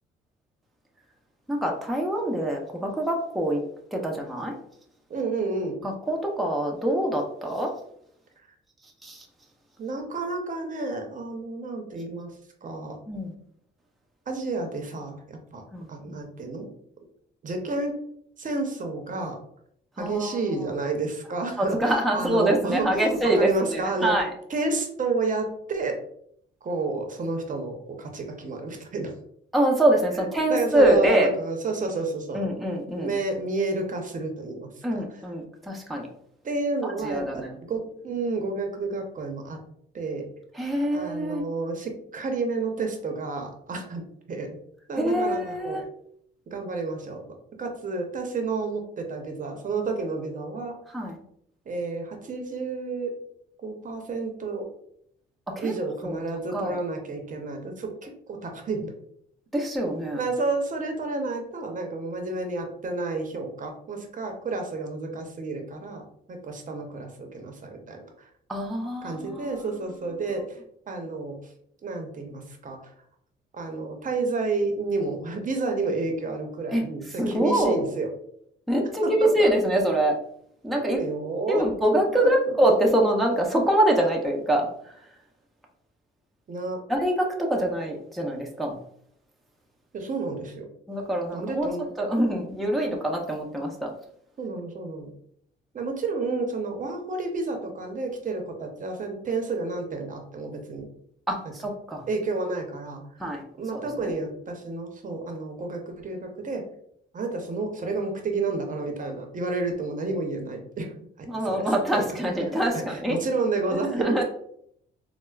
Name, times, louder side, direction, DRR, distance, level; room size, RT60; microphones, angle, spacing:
voice 1, 1.5-3.6 3.9-4.6 5.8-7.7 9.0-9.3 13.1-13.3 15.7-16.2 20.0-20.6 21.6-24.3 29.5-31.3 32.3-33.1 34.8-36.1 36.8-37.5 40.5-41.4 45.0-45.8 50.9-51.2 55.5-55.7 56.0-56.2 56.5-56.8 59.5-60.3 68.5-69.5 70.0-70.1 76.7-76.9 77.2-77.9 78.7-80.2 80.6-81.0 81.5-84.9 86.9-88.8 90.9-91.7 92.0-93.9 101.3-102.0 103.2-103.4 103.7-103.8 111.3-113.2 113.9-114.2, right 1 dB, ahead, 0 dB, 0.5 m, -25 dB
voice 2, 5.1-5.8 9.8-12.3 12.6-13.0 14.3-15.6 15.9-16.7 17.4-18.0 18.4-19.4 20.0-24.2 24.5-26.0 26.6-29.1 30.1-32.4 33.0-35.0 36.4-39.6 39.9-40.3 40.9-44.6 44.9-45.8 46.5-47.2 47.6-50.8 51.7-53.1 53.6-54.7 55.6-58.9 60.2-68.0 69.0-70.6 70.9-71.4 71.8-72.8 73.5-78.1 79.0-79.5 80.8-81.7 82.2-82.3 86.5-86.8 89.9-90.7 91.3-91.9 94.4-95.1 95.7-100.9 101.4-101.5 102.1-103.1 103.6-106.6 107.1-112.1 112.7-114.2, right 3 dB, 40° right, 3 dB, 0.7 m, -30 dB
4.2 x 2.0 x 2.3 m, 0.68 s
cardioid pair, 90°, 20 cm